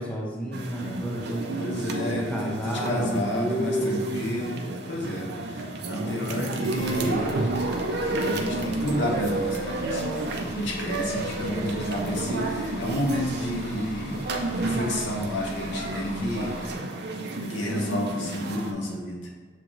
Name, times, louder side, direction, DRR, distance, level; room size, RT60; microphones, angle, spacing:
voice 1, 0.0-1.5 2.0-4.3 5.9-6.9 11.3-11.8, equal, 5° left, -3 dB, 0.5 m, -31 dB
sound 1, 0.5-18.7, right 2 dB, 60° right, 0.5 m, -31 dB
voice 2, 1.6-7.3 8.0-10.2 10.5-14.2 14.5-16.5 17.5-19.2, left 1 dB, 70° left, -1 dB, 0.9 m, -30 dB
Bus / Idling, 6.7-16.7, left 1 dB, 55° left, 0.6 m, -41 dB
6.9 x 2.5 x 3.0 m, 1.5 s
head